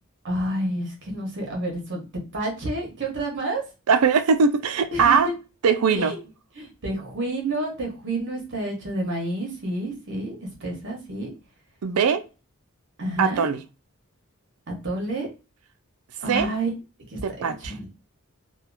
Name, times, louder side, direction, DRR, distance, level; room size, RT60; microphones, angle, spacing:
voice 1, 0.2-2.0 2.3-3.6 4.9-5.4 5.9-6.2 6.6-11.3 13.0-13.5 14.7-15.3 16.2-16.7 17.1-17.9, right 1 dB, 60° right, 1.2 m, -29 dB
voice 2, 3.9-5.3 5.6-6.1 11.8-12.3 13.2-13.6 16.3-16.5 17.2-17.7, right 5 dB, 85° right, 0.4 m, -20 dB
2.9 x 2.3 x 2.4 m
head